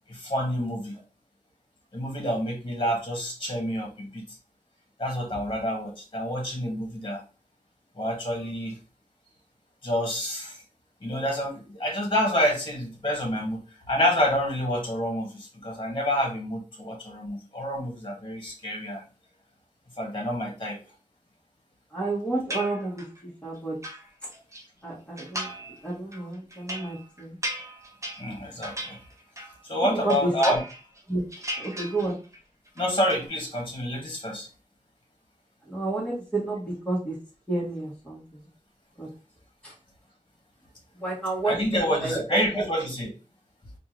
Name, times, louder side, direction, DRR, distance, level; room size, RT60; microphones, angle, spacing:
voice 1, 0.1-1.0 1.9-4.2 5.0-7.2 7.9-8.8 9.8-10.6 11.0-13.6 13.9-19.0 20.0-20.8 22.6-22.7 28.2-29.0 29.6-30.6 32.8-34.5 41.4-43.1, equal, 35° left, -1 dB, 1.7 m, -28 dB
voice 2, 21.9-23.0 23.4-23.8 24.8-25.5 25.8-27.4 29.8-30.6 31.1-31.2 31.6-32.2 35.7-37.1 37.5-38.5 39.0-39.1 39.6-39.7 41.0-42.6, right 2 dB, 10° left, -6 dB, 1.7 m, -30 dB
sound 1, 22.5-23.2 23.6-24.6 25.2-25.8 26.1-29.6 29.9-31.0 31.3-32.4 32.7-33.3, equal, 20° right, 0.8 m, -37 dB
4.3 x 2.6 x 3.2 m, 0.35 s
wide cardioid pair, 65°, 14 cm